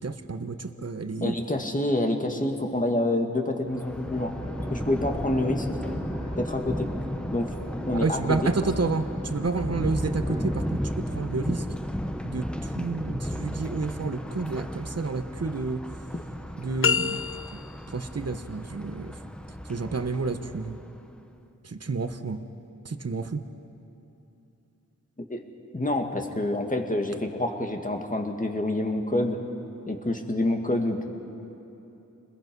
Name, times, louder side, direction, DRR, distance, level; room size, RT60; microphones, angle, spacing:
voice 1, 0.0-1.3 8.0-10.8 11.1-11.6 12.2-15.8 16.6-17.2 17.9-19.1 19.7-20.8 21.6-22.4 22.8-23.5, right 4 dB, 50° right, 9 dB, 1.2 m, -30 dB
voice 2, 1.2-4.4 4.7-5.7 6.4-6.9 7.3-7.6 7.9-8.5 8.8-8.9 16.1-16.2 25.3-25.4 25.7-29.4 29.9-31.1, left 1 dB, 25° left, 3 dB, 2.3 m, -27 dB
Thunder, 3.7-21.1, equal, 5° left, 1.0 m, -34 dB
sound 1, 3.9-10.7, left 1 dB, 65° left, 4.3 m, -46 dB
sound 2, 16.8-17.9, left 6 dB, 45° left, 0.4 m, -26 dB
29.5 x 21.0 x 5.5 m, 3.0 s
wide cardioid pair, 60°, 31 cm